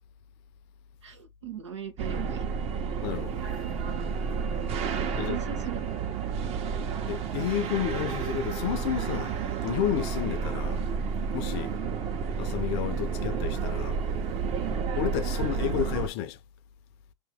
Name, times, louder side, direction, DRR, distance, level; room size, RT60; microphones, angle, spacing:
voice 1, 1.0-2.5 4.9-5.8 11.5-11.9 14.6-14.9, right 10 dB, 85° right, 1.0 m, -39 dB
sound 1, 2.0-16.1, right 6 dB, 45° right, 1.2 m, -31 dB
voice 2, 3.0-3.4 4.8-5.4 7.1-10.8 11.3-11.7 12.4-14.0 15.0-16.4, left 12 dB, 55° left, 0.6 m, -31 dB
4.5 x 2.9 x 3.6 m
hypercardioid pair, 85°, 15 cm